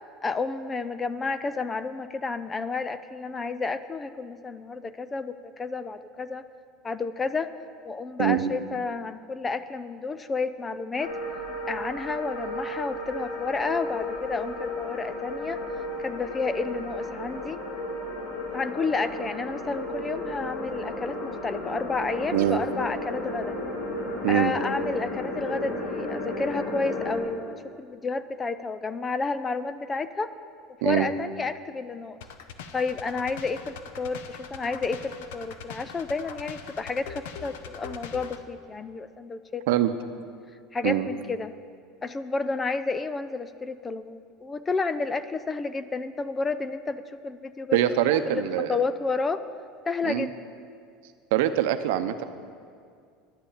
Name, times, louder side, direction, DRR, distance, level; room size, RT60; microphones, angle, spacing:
voice 1, 0.2-6.4 6.8-7.5 7.8-11.1 11.7-15.6 16.0-17.6 18.5-23.6 24.3-30.3 30.8-32.2 32.7-39.8 40.7-41.5 42.0-47.8 48.1-49.4 49.9-50.3, left 4 dB, 15° left, 13 dB, 0.3 m, -31 dB
voice 2, 8.2-8.5 22.3-22.6 24.2-24.5 30.8-31.1 39.7-39.9 40.8-41.1 47.7-48.8 50.0-50.3 51.3-52.2, right 12 dB, 75° right, 9 dB, 0.7 m, -23 dB
sound 1, 11.0-27.2, left 1 dB, 65° left, 2.5 m, -33 dB
sound 2, 32.2-38.4, left 6 dB, 85° left, 0.8 m, -42 dB
11.0 x 8.1 x 8.7 m, 2.2 s
cardioid pair, 175°, 0 cm